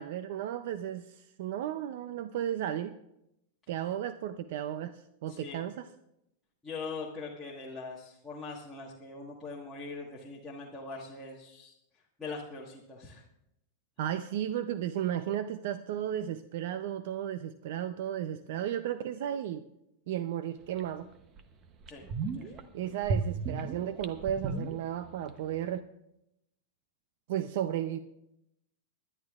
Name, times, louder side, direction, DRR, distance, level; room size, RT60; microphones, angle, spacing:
voice 1, 0.0-3.0 3.7-5.9 14.0-19.6 20.1-21.1 22.7-25.8 27.3-28.0, right 10 dB, 60° right, 11 dB, 0.5 m, -34 dB
voice 2, 5.3-5.6 6.6-11.7 12.2-13.2 21.9-22.0 22.3-23.0, left 4 dB, 5° left, -7 dB, 1.5 m, -42 dB
sound 1, 20.8-20.9 21.4-21.5 21.8-22.6 23.0-25.3 25.5-25.6, right 4 dB, 25° right, 0.8 m, -34 dB
23.0 x 11.0 x 2.4 m, 0.83 s
supercardioid pair, 160°, 0 cm